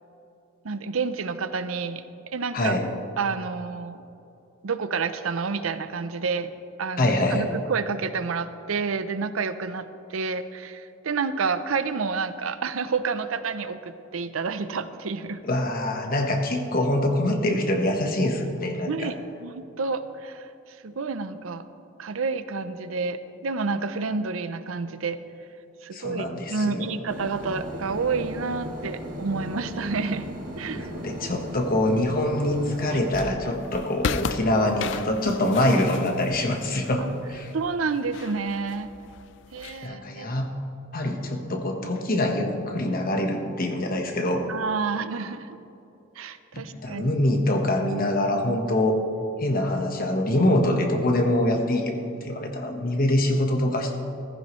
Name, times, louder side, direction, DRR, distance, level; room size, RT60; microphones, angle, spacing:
voice 1, 0.6-2.0 2.3-2.8 3.2-4.0 4.6-6.5 6.8-15.4 18.9-19.2 19.4-20.5 20.8-21.6 22.0-25.2 25.8-30.3 30.6-30.9 32.9-33.0 37.0-37.1 37.5-38.9 39.5-40.4 44.5-45.6 46.2-47.2, right 4 dB, 85° right, 12 dB, 0.6 m, -29 dB
voice 2, 2.5-2.9 7.0-7.5 15.4-19.1 25.9-26.9 30.7-37.5 39.8-40.5 40.9-44.5 46.5-49.0 49.4-53.9, left 1 dB, 45° left, 3 dB, 1.3 m, -24 dB
sound 1, 27.1-33.3, equal, 40° right, 1.5 m, -36 dB
sound 2, 33.4-39.9, left 5 dB, 60° left, 0.4 m, -36 dB
15.0 x 14.5 x 3.2 m, 2.7 s
head